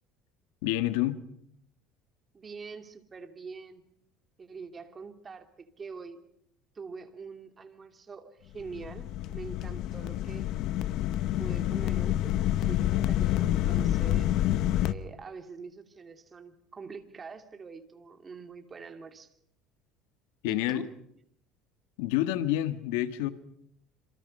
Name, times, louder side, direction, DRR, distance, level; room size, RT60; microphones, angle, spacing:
voice 1, 0.6-1.2 20.4-20.9 22.0-23.3, left 14 dB, 90° left, 1.7 m, -28 dB
voice 2, 2.3-3.8 4.4-6.2 6.7-10.5 11.4-14.4 14.8-19.3 20.4-20.9, right 5 dB, 25° right, 2.7 m, -44 dB
sound 1, 8.6-14.9, left 13 dB, 60° left, 1.0 m, -28 dB
27.0 x 27.0 x 5.5 m
cardioid pair, 125°, 0 cm